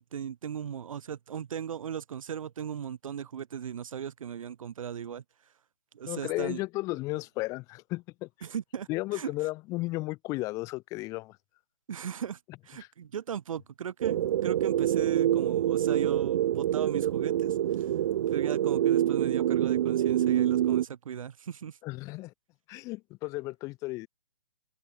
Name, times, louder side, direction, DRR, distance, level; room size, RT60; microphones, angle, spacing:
voice 1, 0.0-5.2 5.9-6.6 8.4-8.9 9.1-9.3 11.9-17.9 18.3-21.8, right 8 dB, 60° right, 3.2 m, -37 dB
voice 2, 6.1-8.3 8.9-11.4 12.8-12.9 21.8-22.3 22.7-24.1, left 21 dB, 15° left, 0.7 m, -34 dB
sound 1, 14.0-20.9, right 11 dB, 40° right, 1.1 m, -26 dB
open air
hypercardioid pair, 155°, 20 cm